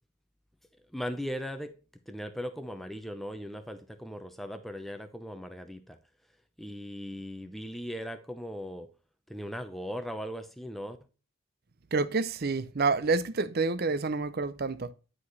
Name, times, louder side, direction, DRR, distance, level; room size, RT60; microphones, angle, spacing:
voice 1, 0.9-1.7 2.1-6.0 6.6-8.9 9.3-11.0, equal, ahead, 0.7 m, -38 dB
voice 2, 11.9-14.9, right 3 dB, 45° right, 0.6 m, -28 dB
10.5 x 4.9 x 4.1 m
head